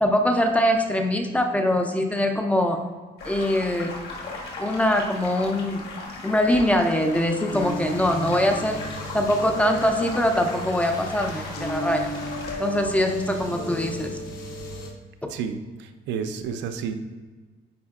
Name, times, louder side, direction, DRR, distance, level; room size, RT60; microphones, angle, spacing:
voice 1, 0.0-2.8 3.3-3.9 4.6-5.8 6.2-8.8 9.1-12.1 12.6-14.1, left 1 dB, 10° left, 4 dB, 0.4 m, -23 dB
sound 1, 3.2-12.6, left 3 dB, 65° left, 1.4 m, -38 dB
sound 2, 7.5-14.9, left 1 dB, 50° left, 1.0 m, -34 dB
voice 2, 15.3-16.9, right 6 dB, 85° right, 7 dB, 0.6 m, -31 dB
9.5 x 4.4 x 2.4 m, 1.4 s
cardioid pair, 170°, 18 cm